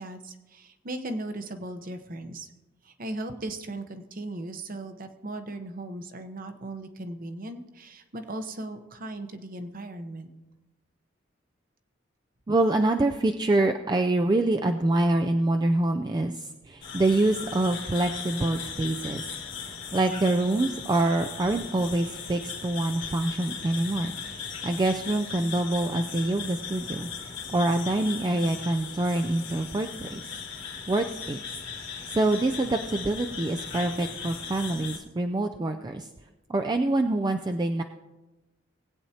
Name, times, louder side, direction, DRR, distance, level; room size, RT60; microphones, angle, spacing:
voice 1, 0.0-2.5 2.8-10.3, right 1 dB, 45° right, 7 dB, 0.9 m, -37 dB
voice 2, 12.5-19.3 19.6-24.1 24.6-30.2 30.9-31.4 32.1-36.1 36.5-37.8, right 2 dB, 20° right, 5 dB, 0.4 m, -26 dB
sound 1, 16.8-35.0, left 6 dB, 65° left, 1.8 m, -38 dB
19.5 x 8.5 x 2.8 m, 1.1 s
head